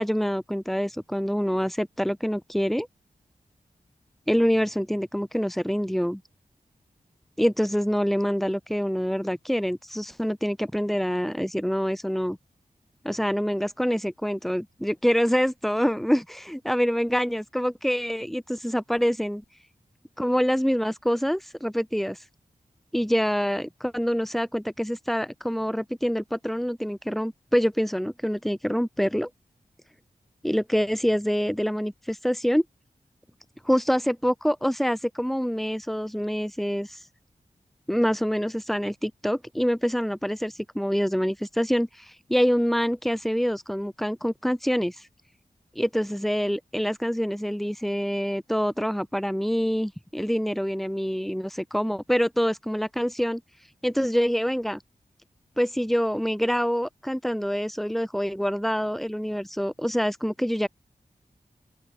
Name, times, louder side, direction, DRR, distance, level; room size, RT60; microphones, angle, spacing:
voice 1, 0.0-2.9 4.3-6.2 7.4-12.4 13.0-19.4 20.2-22.2 22.9-29.3 30.4-32.6 33.6-37.0 37.9-45.1 45.7-53.4 53.8-54.8 55.6-60.7, equal, ahead, 5.2 m, -26 dB
open air
wide cardioid pair, 90°, 14 cm